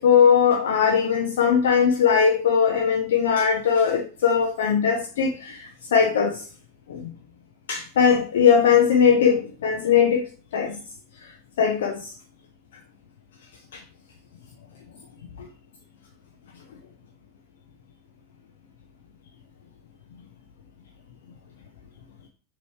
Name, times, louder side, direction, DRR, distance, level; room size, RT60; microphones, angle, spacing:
voice 1, 0.0-6.4 6.9-7.1 7.7-10.3 10.5-10.8 11.6-12.1, left 7 dB, 60° left, 0.7 m, -20 dB
6.8 x 3.1 x 4.7 m
figure-of-eight pair, 90°, 0 cm